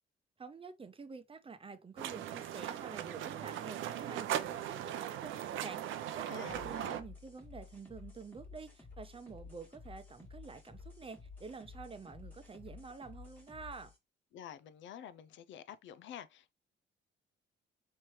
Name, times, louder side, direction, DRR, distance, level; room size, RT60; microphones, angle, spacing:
voice 1, 0.4-13.9, right 5 dB, 25° right, 0.7 m, -49 dB
sound 1, 2.0-7.0, right 11 dB, 80° right, 0.5 m, -39 dB
voice 2, 6.3-7.0 14.3-16.5, left 9 dB, 70° left, 0.5 m, -49 dB
sound 2, 6.4-14.0, left 4 dB, 10° left, 1.5 m, -53 dB
4.4 x 3.2 x 3.0 m
cardioid pair, 90°, 20 cm